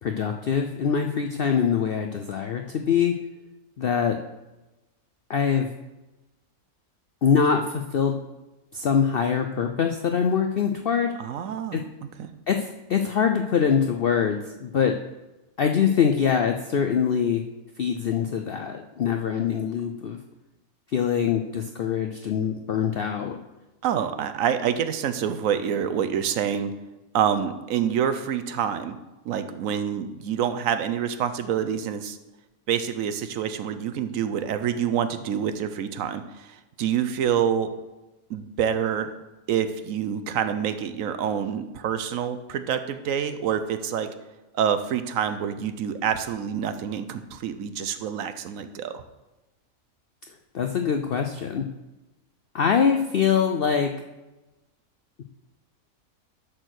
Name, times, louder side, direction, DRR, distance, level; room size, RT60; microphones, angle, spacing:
voice 1, 0.0-3.1 3.8-4.2 5.3-5.7 7.2-8.2 8.7-11.1 11.7-11.8 12.5-15.0 15.6-17.4 17.8-20.2 20.9-23.4 50.5-51.7 52.5-53.9, left 7 dB, 70° left, 5 dB, 0.5 m, -23 dB
voice 2, 11.2-11.8 12.2-12.3 23.8-26.7 27.1-29.0 29.3-32.2 32.7-37.7 38.3-39.1 39.5-44.1 44.5-49.0, right 8 dB, 70° right, 10 dB, 1.0 m, -27 dB
10.5 x 4.4 x 6.3 m, 1.1 s
omnidirectional pair, 1.6 m